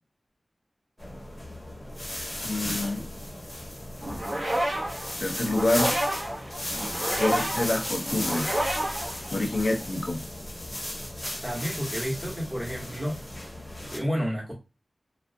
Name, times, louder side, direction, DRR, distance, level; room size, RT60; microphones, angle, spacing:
sound 1, 1.0-14.0, left 1 dB, 15° left, 0.7 m, -35 dB
voice 1, 2.4-3.1 5.2-5.9 7.2-8.6 9.3-10.2, left 2 dB, 55° left, 0.5 m, -27 dB
sound 2, 4.0-9.8, right 1 dB, 50° right, 0.7 m, -30 dB
voice 2, 11.4-13.2 13.9-14.5, equal, 20° right, 1.1 m, -30 dB
2.4 x 2.0 x 2.6 m
wide cardioid pair, 60°, 0 cm